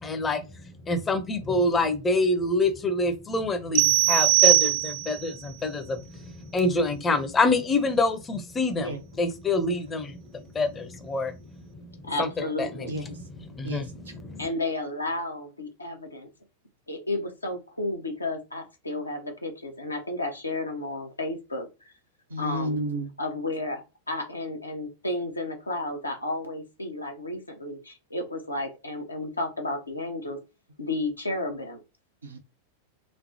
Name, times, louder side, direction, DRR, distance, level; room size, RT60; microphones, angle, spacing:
voice 1, 0.0-0.4 0.9-8.9 9.2-12.3 12.6-14.5, left 2 dB, 20° left, 0.6 m, -27 dB
sound 1, 3.7-5.3, right 18 dB, 50° right, 0.3 m, -20 dB
voice 2, 12.0-12.9 14.4-16.3 16.9-21.7 22.4-22.8 23.2-30.4 30.8-31.8, left 2 dB, 80° left, 0.7 m, -32 dB
voice 3, 12.9-13.2 13.6-13.9 22.3-23.1 32.2-32.4, right 1 dB, 75° right, 0.7 m, -31 dB
3.1 x 2.0 x 2.7 m
figure-of-eight pair, 90°, 0 cm